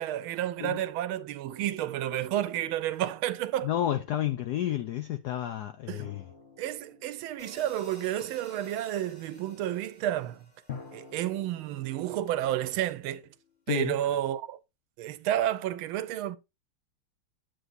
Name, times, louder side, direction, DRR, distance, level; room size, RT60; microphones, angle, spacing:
voice 1, 0.0-3.7 5.9-6.1 6.6-10.4 10.9-13.2 13.7-14.6 15.0-16.4, right 12 dB, 80° right, 1.4 m, -31 dB
voice 2, 3.6-6.2 13.7-13.9, left 12 dB, 85° left, 0.8 m, -30 dB
sound 1, 6.0-8.3 10.7-13.6, left 7 dB, 45° left, 0.9 m, -48 dB
sound 2, 7.4-11.8, left 1 dB, 30° left, 3.5 m, -54 dB
9.0 x 7.2 x 2.5 m
omnidirectional pair, 2.4 m